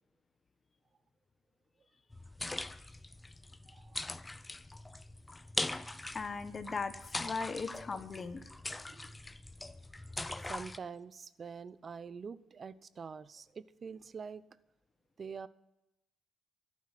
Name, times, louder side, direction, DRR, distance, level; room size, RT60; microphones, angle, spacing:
sound 1, 2.1-10.8, left 2 dB, 15° left, 0.7 m, -41 dB
voice 1, 3.7-4.2 8.9-9.2 9.9-10.1 10.5-14.4 15.2-15.5, right 5 dB, 45° right, 17 dB, 0.8 m, -46 dB
voice 2, 6.1-8.5, left 4 dB, 35° left, 11 dB, 1.3 m, -38 dB
14.0 x 12.0 x 7.6 m, 0.88 s
cardioid pair, 90°, 0 cm